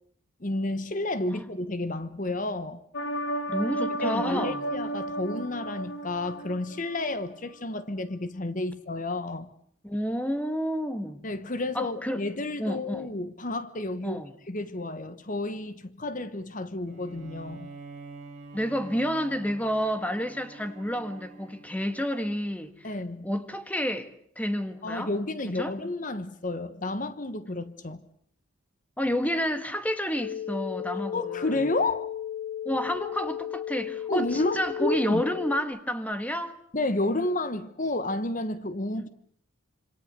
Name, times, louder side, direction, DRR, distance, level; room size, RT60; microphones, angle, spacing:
voice 1, 0.4-2.8 4.0-9.5 11.2-14.2 14.5-17.7 22.8-23.3 24.8-28.1 31.1-32.1 34.1-35.2 36.7-39.1, left 2 dB, 40° left, 1.2 m, -31 dB
sound 1, 2.9-7.2 7.5-7.6, right 1 dB, 65° left, 1.7 m, -33 dB
voice 2, 3.5-4.7 9.8-11.2 11.7-12.2 12.6-13.1 14.0-14.3 18.5-22.9 23.2-25.1 25.5-25.7 29.0-31.5 32.6-36.6 38.9-39.1, equal, 10° left, 1.6 m, -30 dB
Bowed string instrument, 16.8-22.3, right 3 dB, 35° right, 4.7 m, -46 dB
sound 2, 30.2-35.6, left 10 dB, 90° left, 1.5 m, -35 dB
26.5 x 26.0 x 6.8 m
head